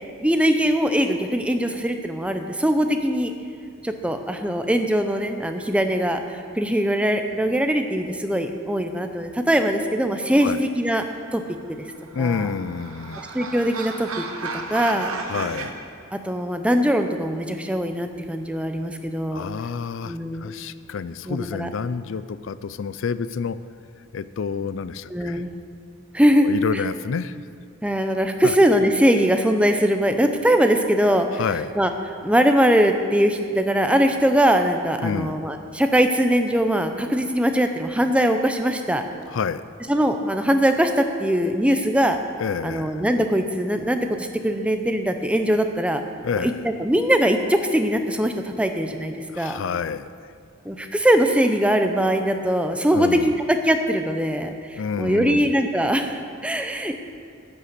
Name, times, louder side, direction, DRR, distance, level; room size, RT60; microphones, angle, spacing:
voice 1, 0.2-3.3 3.8-11.1 11.3-11.4 12.2-12.5 13.3-14.2 14.7-15.1 16.1-19.5 20.0-20.5 21.2-21.7 25.1-25.5 26.1-26.5 27.8-31.4 31.8-31.9 32.2-39.0 39.9-42.2 42.6-46.0 46.4-49.6 50.7-57.0, equal, 5° right, 6 dB, 0.6 m, -21 dB
sound 1, 11.8-15.7, right 4 dB, 80° right, 1.0 m, -33 dB
voice 2, 12.1-13.2 15.2-15.8 19.3-23.6 24.1-25.5 26.4-27.4 28.4-28.6 31.3-31.7 35.0-35.4 39.3-39.6 42.4-43.0 46.2-46.6 49.3-50.1 52.9-53.4 54.8-55.5, left 6 dB, 60° left, 15 dB, 0.4 m, -28 dB
11.0 x 8.5 x 6.7 m, 2.3 s
head